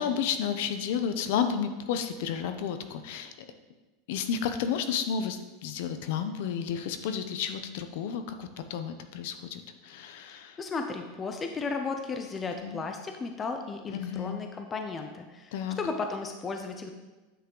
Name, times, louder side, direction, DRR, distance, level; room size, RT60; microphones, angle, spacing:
voice 1, 0.0-3.3 4.1-10.6 12.6-12.8 13.9-14.4 15.5-15.8, left 7 dB, 55° left, 9 dB, 0.7 m, -31 dB
voice 2, 10.3-16.9, left 4 dB, 15° left, 5 dB, 0.4 m, -35 dB
9.5 x 5.9 x 3.8 m, 1.2 s
supercardioid pair, 175°, 0 cm